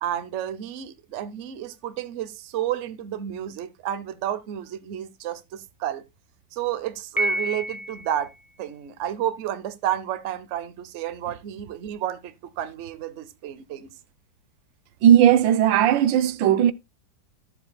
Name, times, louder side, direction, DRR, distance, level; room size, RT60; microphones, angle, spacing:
voice 1, 0.0-6.0 6.5-8.3 8.6-13.9, right 11 dB, 55° right, 0.9 m, -31 dB
Piano, 7.2-8.3, equal, 5° left, 0.7 m, -28 dB
voice 2, 15.0-16.7, right 10 dB, 90° right, 1.4 m, -17 dB
13.0 x 7.3 x 2.2 m
omnidirectional pair, 2.0 m